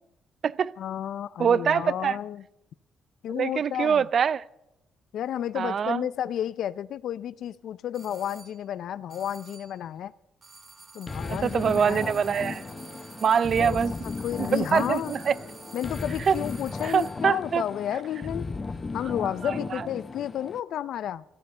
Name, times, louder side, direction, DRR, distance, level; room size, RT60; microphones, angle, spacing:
voice 1, 0.8-2.4 3.2-4.1 5.1-10.1 10.9-12.2 13.6-13.8 14.0-15.1 15.7-18.5 18.9-21.2, left 10 dB, 75° left, 0.5 m, -32 dB
voice 2, 1.4-2.2 3.3-4.4 5.6-6.1 11.3-12.7 13.2-13.9 14.5-15.3 16.2-16.4 16.8-17.6 19.4-19.9, right 7 dB, 55° right, 0.4 m, -24 dB
sound 1, 7.9-8.6 9.1-9.8 10.4-17.3, right 3 dB, 35° right, 2.6 m, -49 dB
sound 2, 10.6-18.0, right 3 dB, 70° right, 6.8 m, -53 dB
sound 3, 11.1-20.6, left 3 dB, 30° left, 0.6 m, -36 dB
14.5 x 12.5 x 6.7 m
cardioid pair, 90°, 0 cm